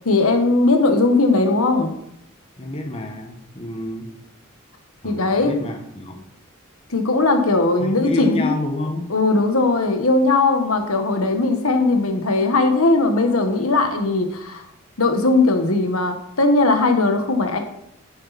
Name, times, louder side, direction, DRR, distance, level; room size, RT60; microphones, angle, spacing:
voice 1, 0.0-1.9 5.0-5.6 6.9-8.5 9.1-14.6 15.0-17.6, left 3 dB, 80° left, 6 dB, 1.4 m, -18 dB
voice 2, 2.6-4.1 5.0-6.2 7.8-9.1, left 1 dB, 30° left, 3 dB, 1.4 m, -29 dB
10.0 x 8.5 x 4.2 m, 0.75 s
head